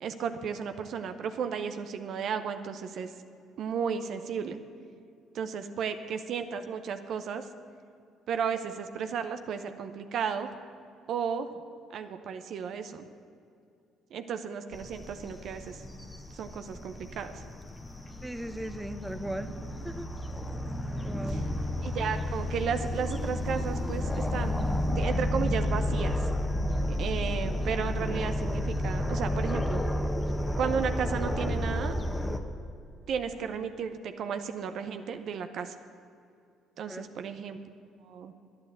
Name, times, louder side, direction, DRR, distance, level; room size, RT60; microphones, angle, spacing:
voice 1, 0.0-3.1 3.6-4.6 5.3-7.5 8.3-10.5 11.1-11.5 11.9-13.1 14.1-15.8 16.3-17.4 20.9-21.1 21.8-26.3 26.9-29.8 30.6-32.0 33.1-35.8 36.8-37.6 38.0-38.3, right 6 dB, 60° right, 9 dB, 0.7 m, -34 dB
sound 1, 14.7-32.4, left 1 dB, 15° left, 1.2 m, -31 dB
voice 2, 18.2-19.5 19.8-20.1 21.0-21.5 36.8-37.1, right 1 dB, 10° right, 9 dB, 0.9 m, -38 dB
10.5 x 9.9 x 7.8 m, 2.5 s
hypercardioid pair, 55°, 0 cm